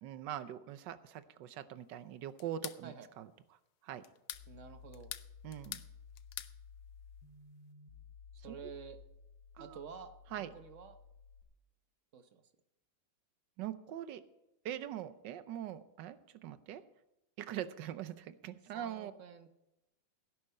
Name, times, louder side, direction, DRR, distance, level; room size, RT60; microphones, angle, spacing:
voice 1, 0.0-3.3 3.8-4.0 5.4-5.8 8.5-8.6 9.6-9.8 10.3-10.5 13.6-14.2 14.6-16.8 17.4-19.1, right 11 dB, 75° right, 12 dB, 1.4 m, -42 dB
sound 1, 2.4-2.8 4.0-4.5 4.9-5.9 6.1-6.5, left 12 dB, 70° left, 1.1 m, -44 dB
sound 2, 4.3-11.4, left 6 dB, 90° left, 2.6 m, -55 dB
voice 2, 4.5-5.1 8.4-9.0 9.6-10.1 10.5-11.0 12.1-12.4 18.7-19.5, right 7 dB, 50° right, 8 dB, 1.1 m, -49 dB
16.5 x 9.4 x 4.3 m, 0.92 s
omnidirectional pair, 2.0 m